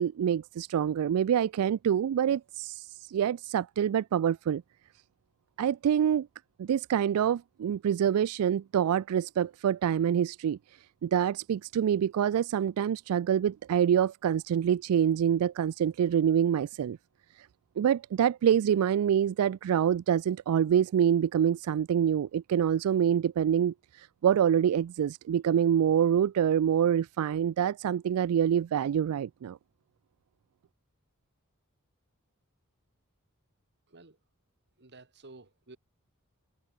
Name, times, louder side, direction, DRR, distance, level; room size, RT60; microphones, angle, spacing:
voice 1, 0.0-4.6 5.6-6.3 6.6-10.6 11.0-17.0 17.4-17.5 17.8-29.6, right 9 dB, 75° right, 0.3 m, -26 dB
voice 2, 34.8-35.8, right 2 dB, 50° right, 2.4 m, -52 dB
head